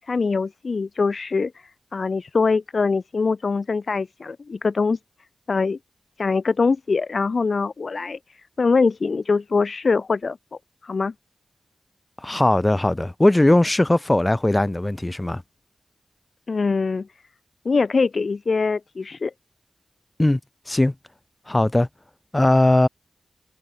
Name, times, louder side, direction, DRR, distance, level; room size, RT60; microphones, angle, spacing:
voice 1, 0.1-1.5 1.9-5.0 5.5-5.8 6.2-8.2 8.6-10.4 10.8-11.1 16.5-17.1 17.7-19.3, left 4 dB, 55° left, 1.9 m, -23 dB
voice 2, 12.2-15.4 20.2-20.4 20.7-20.9 21.5-21.9 22.3-22.9, left 1 dB, 20° left, 0.4 m, -19 dB
wide cardioid pair, 75°, 0 cm